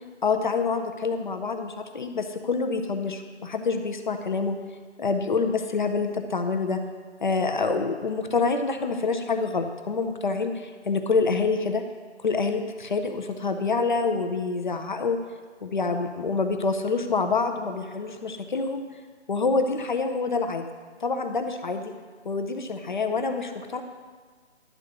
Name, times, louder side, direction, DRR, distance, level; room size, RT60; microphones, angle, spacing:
voice 1, 0.2-4.6 5.0-6.8 7.2-11.8 12.2-15.2 15.6-18.8 19.3-20.7 21.0-21.9 22.2-23.8, left 4 dB, 45° left, 6 dB, 0.6 m, -26 dB
11.0 x 3.8 x 6.6 m, 1.5 s
hypercardioid pair, 165°, 35 cm